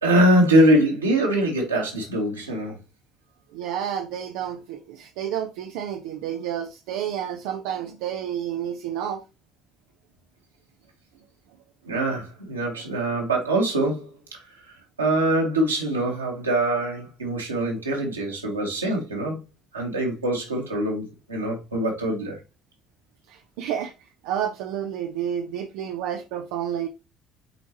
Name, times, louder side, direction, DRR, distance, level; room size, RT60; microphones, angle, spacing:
voice 1, 0.0-2.8 11.9-14.4 14.6-19.4 19.7-22.4, right 1 dB, 85° right, 2.0 m, -23 dB
voice 2, 3.5-9.2 11.8-12.0 23.3-26.9, right 9 dB, 65° right, 0.6 m, -30 dB
7.8 x 4.7 x 2.9 m
figure-of-eight pair, 50°, 0 cm